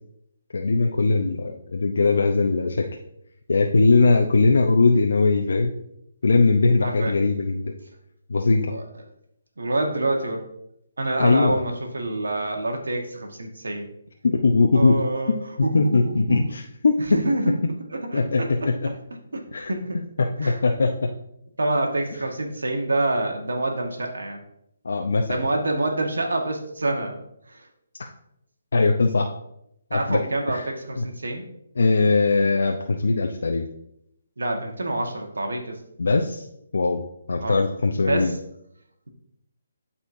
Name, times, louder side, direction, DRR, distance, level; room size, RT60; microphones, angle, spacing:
voice 1, 0.5-2.8 3.5-5.7 6.2-7.7 8.3-8.7 11.2-11.6 14.2-15.0 15.7-16.9 18.1-18.7 19.5-19.7 20.4-20.9 24.8-25.4 28.0-28.1 28.7-29.3 29.9-30.2 30.5-30.6 31.0-31.1 31.8-33.7 36.0-36.4 36.7-37.0 37.3-38.3, left 3 dB, 75° left, 2 dB, 0.7 m, -20 dB
voice 2, 6.8-7.1 8.7-8.8 9.6-10.4 11.0-13.9 14.7-16.4 17.1-17.5 17.9-18.5 19.3-19.4 19.6-20.0 20.4-20.6 21.6-24.4 25.2-27.2 27.5-27.7 29.9-31.4 34.4-35.8 37.4-37.6 38.0-38.4, right 2 dB, 85° right, 2 dB, 1.4 m, -26 dB
12.5 x 4.3 x 2.7 m, 0.77 s
hypercardioid pair, 150°, 0 cm